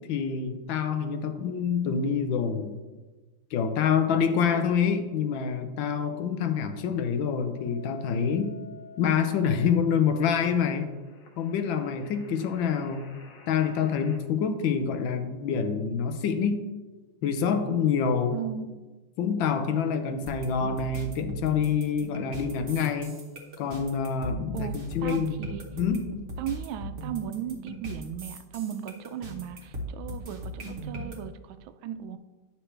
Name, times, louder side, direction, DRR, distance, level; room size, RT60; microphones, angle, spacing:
voice 1, 0.1-2.8 3.5-8.5 9.0-10.9 11.4-13.0 13.5-16.6 17.2-18.5 19.2-23.1 23.6-25.4 25.8-26.0, left 6 dB, 80° left, 8 dB, 1.5 m, -26 dB
sound 1, 7.5-14.2, left 5 dB, 60° left, 1.5 m, -50 dB
voice 2, 18.3-18.8 24.5-24.8 25.0-25.7 26.4-32.2, right 10 dB, 85° right, 10 dB, 1.3 m, -36 dB
sound 2, 20.3-31.2, equal, 45° right, 1.3 m, -38 dB
9.5 x 6.0 x 3.3 m, 1.2 s
omnidirectional pair, 2.1 m